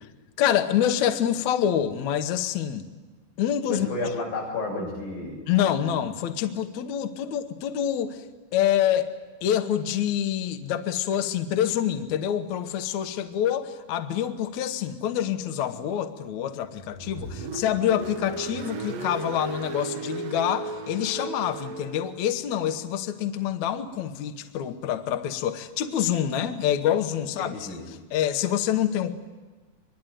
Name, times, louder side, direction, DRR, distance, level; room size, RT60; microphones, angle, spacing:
voice 1, 0.4-2.9 3.4-3.9 5.5-8.2 8.5-9.1 9.4-29.1, left 10 dB, 85° left, 8 dB, 1.6 m, -26 dB
voice 2, 3.7-5.5 27.4-27.8, left 2 dB, 55° left, 0 dB, 7.6 m, -31 dB
Car, 16.8-22.2, right 3 dB, 80° right, 1.5 m, -35 dB
24.5 x 21.5 x 9.2 m, 1.3 s
omnidirectional pair, 5.1 m